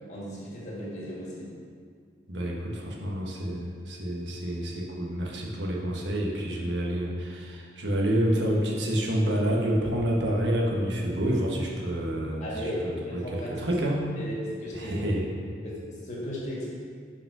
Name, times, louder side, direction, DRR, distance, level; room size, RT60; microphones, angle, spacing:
voice 1, 0.0-1.5 12.4-13.7 14.2-15.1 15.6-16.7, equal, 40° left, -6 dB, 1.9 m, -35 dB
voice 2, 2.3-12.5 12.8-14.0 14.7-15.3, right 1 dB, 85° right, -2 dB, 1.2 m, -28 dB
5.8 x 5.3 x 5.4 m, 2.1 s
head